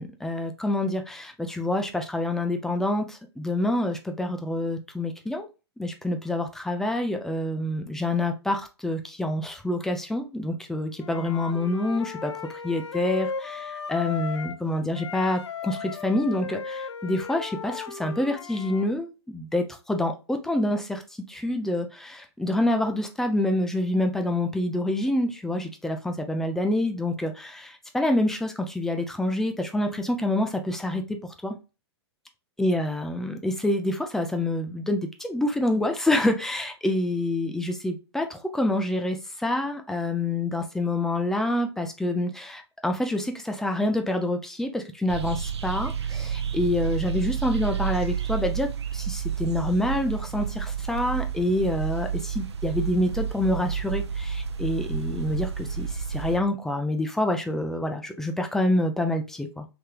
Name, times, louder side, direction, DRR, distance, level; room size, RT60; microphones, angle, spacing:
voice 1, 0.0-5.5 5.8-12.3 12.6-21.0 21.3-31.0 31.4-31.5 32.6-59.7, left 1 dB, 5° left, 0.4 m, -27 dB
Wind instrument woodwind instrument, 11.0-14.6 14.9-18.9, left 5 dB, 75° left, 0.5 m, -36 dB
sound 1, 45.1-56.4, right 7 dB, 70° right, 0.6 m, -30 dB
3.3 x 3.2 x 2.3 m
figure-of-eight pair, 120°, 15 cm